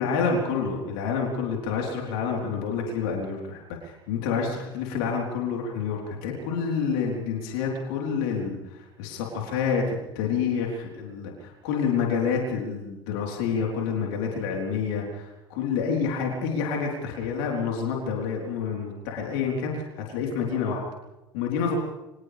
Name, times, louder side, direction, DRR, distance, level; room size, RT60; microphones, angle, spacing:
voice 1, 0.0-20.8 21.3-21.8, left 6 dB, 65° left, 0 dB, 4.0 m, -28 dB
30.0 x 25.0 x 3.5 m, 0.99 s
figure-of-eight pair, 70°, 13 cm